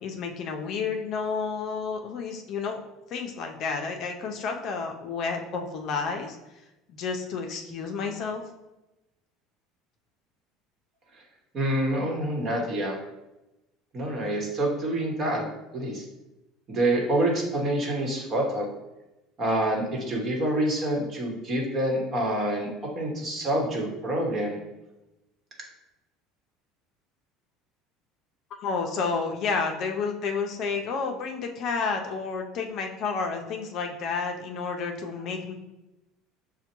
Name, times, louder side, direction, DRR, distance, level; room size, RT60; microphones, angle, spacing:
voice 1, 0.0-2.8 3.1-6.4 6.9-8.4 28.6-35.5, left 5 dB, 50° left, 3 dB, 0.5 m, -30 dB
voice 2, 11.5-13.0 13.9-15.4 15.7-16.0 16.7-18.7 19.4-24.6, right 1 dB, 35° right, 0 dB, 1.1 m, -27 dB
6.4 x 2.2 x 2.9 m, 0.98 s
supercardioid pair, 125°, 0 cm